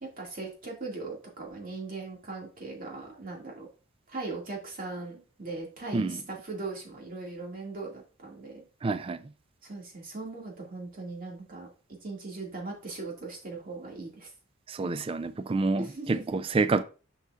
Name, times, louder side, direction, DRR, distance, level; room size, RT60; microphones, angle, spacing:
voice 1, 0.2-3.7 4.1-8.6 9.6-11.7 12.0-14.3 15.8-16.4, right 3 dB, 45° right, 2.2 m, -39 dB
voice 2, 8.8-9.2 14.7-16.8, right 3 dB, 25° right, 0.3 m, -28 dB
6.6 x 5.9 x 2.4 m
head